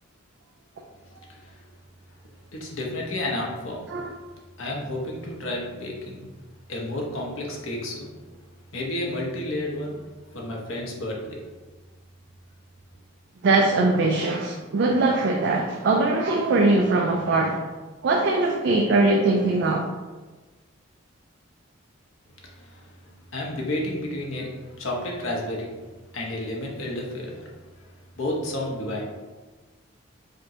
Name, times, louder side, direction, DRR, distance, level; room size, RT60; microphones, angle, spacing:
voice 1, 1.3-1.7 2.5-3.9 4.6-6.3 6.7-8.2 8.7-10.0 10.3-11.4 22.4-25.7 26.1-29.1, left 1 dB, 75° left, -1 dB, 0.8 m, -31 dB
voice 2, 13.4-17.7 18.0-19.9, right 2 dB, 55° right, 0 dB, 0.4 m, -21 dB
5.0 x 2.1 x 2.8 m, 1.3 s
head